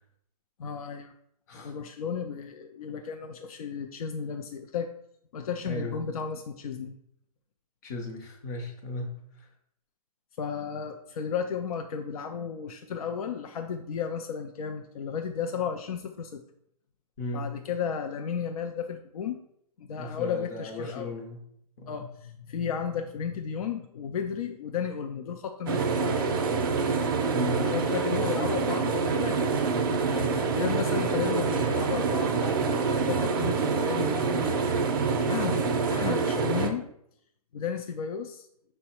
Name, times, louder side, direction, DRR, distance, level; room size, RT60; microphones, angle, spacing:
voice 1, 0.6-1.1 1.5-4.9 5.3-6.9 10.4-16.4 17.3-19.4 19.8-21.1 21.9-26.5 27.6-29.5 30.5-34.5 35.3-36.9 37.5-38.5, left 7 dB, 65° left, 5 dB, 0.4 m, -34 dB
voice 2, 5.6-6.0 7.8-9.5 17.2-17.5 20.0-21.4 21.8-22.1 27.3-27.7 30.0-30.6, left 2 dB, 30° left, 2 dB, 0.7 m, -36 dB
sound 1, 25.7-36.7, right 4 dB, 35° right, 0.4 m, -26 dB
5.4 x 2.1 x 4.2 m, 0.72 s
hypercardioid pair, 160°, 20 cm